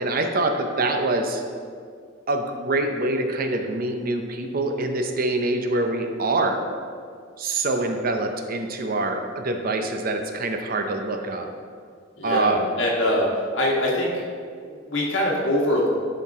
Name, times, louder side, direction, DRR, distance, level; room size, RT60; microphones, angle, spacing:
voice 1, 0.0-1.4 2.3-6.6 7.4-11.5 12.2-12.7, right 2 dB, 45° right, 5 dB, 0.6 m, -25 dB
voice 2, 12.2-14.1 14.6-15.9, left 1 dB, 65° left, -3 dB, 1.6 m, -23 dB
12.0 x 4.6 x 3.6 m, 2.1 s
head